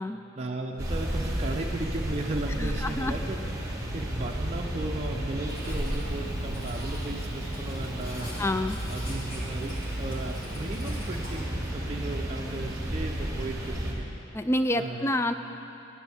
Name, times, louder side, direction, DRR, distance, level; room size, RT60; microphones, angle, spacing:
voice 1, 0.3-3.4 3.9-8.3 8.9-14.0 14.7-15.1, right 2 dB, 35° right, 0 dB, 0.6 m, -36 dB
sound 1, 0.8-13.9, right 1 dB, 20° right, 1.3 m, -32 dB
voice 2, 2.6-3.2 8.4-8.8 14.3-15.3, left 1 dB, 15° left, 9 dB, 0.3 m, -27 dB
Writing, 5.5-11.4, left 1 dB, 80° left, 2.4 m, -46 dB
16.0 x 9.7 x 3.5 m, 2.9 s
head